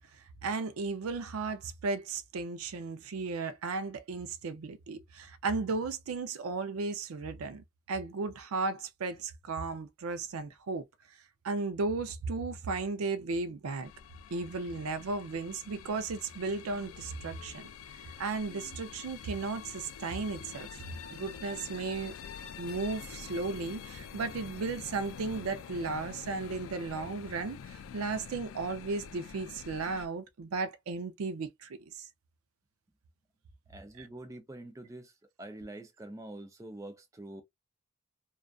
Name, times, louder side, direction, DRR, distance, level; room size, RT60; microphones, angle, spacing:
voice 1, 0.4-10.9 11.4-13.9 14.3-17.7 18.2-20.8 21.1-22.1 22.6-32.1 34.0-34.1, right 3 dB, 90° right, 0.4 m, -35 dB
sound 1, 13.8-30.1, left 7 dB, 75° left, 0.3 m, -46 dB
voice 2, 33.7-35.1 35.4-37.4, right 1 dB, 15° right, 0.4 m, -45 dB
2.5 x 2.3 x 2.3 m
head